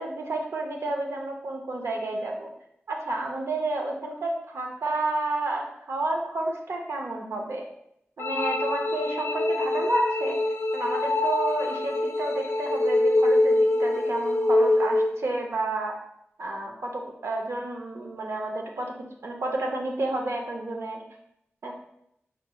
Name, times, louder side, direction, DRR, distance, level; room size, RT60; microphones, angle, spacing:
voice 1, 0.0-2.5 2.9-7.6 8.2-10.4 10.7-15.9 16.4-18.9 19.2-21.0 21.6-21.7, right 2 dB, 75° right, 1 dB, 0.6 m, -30 dB
sound 1, 8.2-15.2, left 2 dB, 70° left, 0.4 m, -24 dB
4.4 x 3.0 x 2.2 m, 0.77 s
wide cardioid pair, 85°, 5 cm